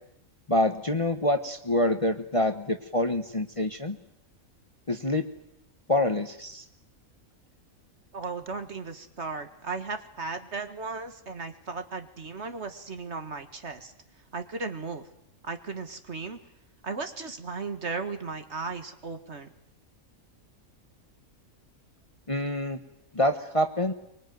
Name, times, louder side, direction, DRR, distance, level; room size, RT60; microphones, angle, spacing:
voice 1, 0.5-4.0 4.9-5.3 5.9-6.6 22.3-22.8 23.1-23.9, left 1 dB, 25° left, 8 dB, 1.1 m, -26 dB
voice 2, 8.1-13.9 14.3-15.1 15.4-16.4 16.8-19.5, right 4 dB, 55° right, 8 dB, 1.9 m, -36 dB
24.0 x 23.0 x 9.3 m, 0.80 s
omnidirectional pair, 1.5 m